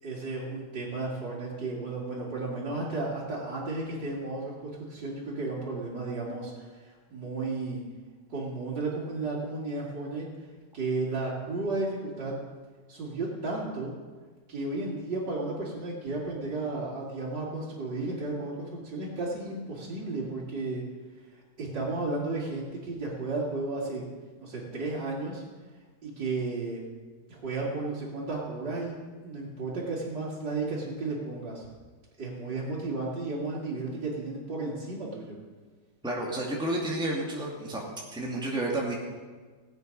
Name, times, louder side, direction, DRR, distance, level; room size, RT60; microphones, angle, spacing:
voice 1, 0.0-7.8 8.3-10.3 10.7-12.3 12.9-13.9 14.5-20.8 21.6-24.0 24.4-25.4 26.0-26.8 27.3-31.7 32.2-35.4, right 3 dB, 90° right, -7 dB, 3.1 m, -33 dB
voice 2, 36.0-37.8 38.1-38.9, right 1 dB, 5° right, -3 dB, 2.1 m, -30 dB
17.5 x 8.7 x 5.4 m, 1.4 s
omnidirectional pair, 1.8 m